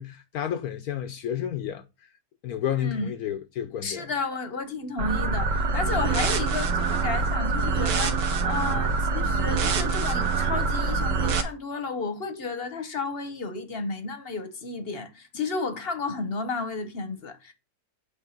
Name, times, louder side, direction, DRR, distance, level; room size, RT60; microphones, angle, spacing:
voice 1, 0.0-1.8 2.4-4.1 8.7-8.8, left 10 dB, 70° left, 1.0 m, -31 dB
voice 2, 2.7-3.1 3.8-17.5, left 4 dB, 45° left, 0.9 m, -32 dB
sound 1, 5.0-11.4, right 4 dB, 80° right, 1.6 m, -25 dB
8.1 x 3.3 x 5.8 m
omnidirectional pair, 1.9 m